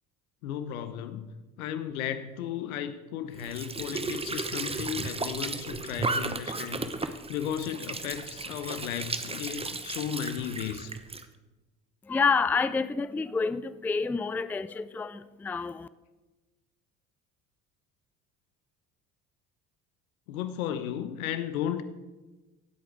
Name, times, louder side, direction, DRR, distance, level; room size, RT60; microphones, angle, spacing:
voice 1, 0.4-10.9 20.3-21.8, left 9 dB, 75° left, 1.1 m, -35 dB
Squeak / Sink (filling or washing) / Trickle dribble, 3.3-11.3, right 3 dB, 15° right, 1.0 m, -35 dB
voice 2, 12.0-15.9, left 5 dB, 5° left, 0.4 m, -28 dB
17.5 x 8.3 x 4.7 m
hypercardioid pair, 60°, 42 cm